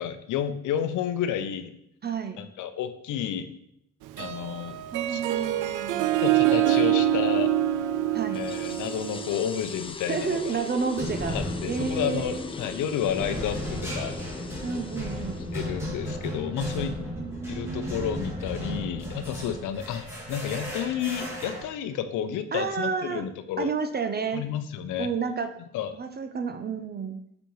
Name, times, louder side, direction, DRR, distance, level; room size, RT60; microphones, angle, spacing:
voice 1, 0.0-1.7 2.4-3.5 4.2-4.8 5.1-5.2 6.2-7.5 8.3-10.6 11.3-14.2 15.5-16.9 17.5-23.7 24.3-25.1 25.7-25.9, left 9 dB, 80° left, 11 dB, 0.6 m, -31 dB
voice 2, 2.0-2.4 4.9-6.1 8.1-8.4 10.1-11.4 11.7-12.4 14.6-15.6 17.1-18.3 22.5-23.3 23.6-24.4 25.0-25.5 25.9-27.2, right 5 dB, 35° right, 8 dB, 0.5 m, -31 dB
Harp, 4.0-9.6, right 12 dB, 85° right, 0.5 m, -25 dB
sound 1, 8.3-19.4, left 4 dB, 20° left, 0.4 m, -40 dB
sound 2, 9.9-10.2 11.0-21.6, equal, 10° right, 2.6 m, -35 dB
6.9 x 5.3 x 3.1 m, 0.75 s
cardioid pair, 90°, 30 cm